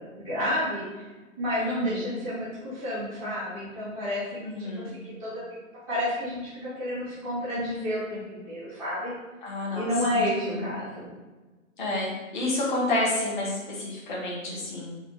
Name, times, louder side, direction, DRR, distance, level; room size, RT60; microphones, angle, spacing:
voice 1, 0.1-1.0 1.4-5.4 5.9-9.1 9.7-11.1, left 1 dB, 5° left, -14 dB, 0.6 m, -30 dB
voice 2, 1.6-2.2 4.4-5.0 9.4-10.8 11.8-14.9, left 2 dB, 35° left, -4 dB, 1.1 m, -30 dB
5.1 x 2.3 x 3.1 m, 1.2 s
hypercardioid pair, 160°, 41 cm